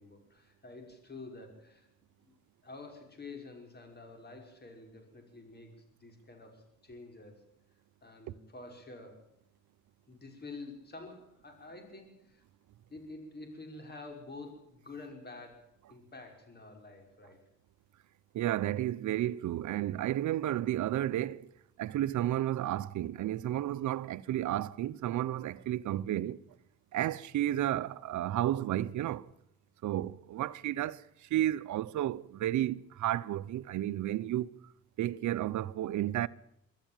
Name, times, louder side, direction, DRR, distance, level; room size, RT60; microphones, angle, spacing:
voice 1, 0.0-1.9 2.2-2.4 2.6-7.5 8.0-9.2 10.1-12.4 12.9-17.4, left 3 dB, 35° left, 5.7 m, -48 dB
voice 2, 18.3-21.5 21.8-26.4 26.9-29.3 29.8-34.5 35.0-36.3, right 13 dB, 75° right, 0.8 m, -32 dB
23.5 x 14.0 x 9.1 m
cardioid pair, 90°, 30 cm